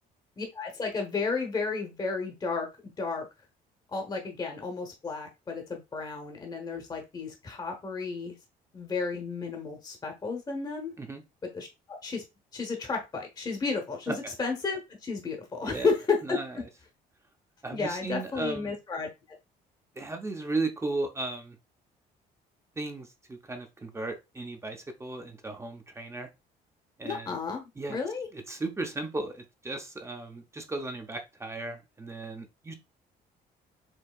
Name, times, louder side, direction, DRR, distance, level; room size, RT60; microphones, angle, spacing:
voice 1, 0.4-3.3 3.9-8.4 8.7-10.9 11.5-12.2 12.5-16.4 17.7-19.1 27.0-28.3, left 4 dB, 25° left, 0.9 m, -32 dB
voice 2, 17.6-18.7 20.0-21.6 22.8-26.3 27.0-27.4 27.8-28.0 28.3-32.7, right 3 dB, 15° right, 0.6 m, -35 dB
4.5 x 2.7 x 2.3 m
cardioid pair, 110°, 17 cm